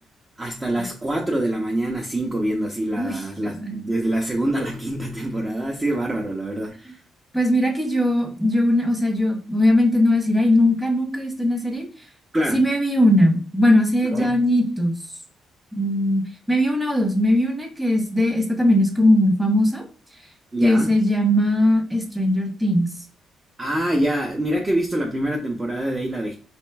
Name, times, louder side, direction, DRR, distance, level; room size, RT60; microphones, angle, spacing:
voice 1, 0.4-6.9 12.3-12.6 14.1-14.4 20.5-20.9 23.6-26.4, right 1 dB, 20° right, 0.6 m, -25 dB
voice 2, 3.0-3.8 7.3-11.9 12.5-15.0 15.7-16.2 16.5-19.8 20.6-22.9, left 1 dB, 5° right, 1.2 m, -19 dB
4.3 x 3.3 x 2.3 m
cardioid pair, 90°, 0 cm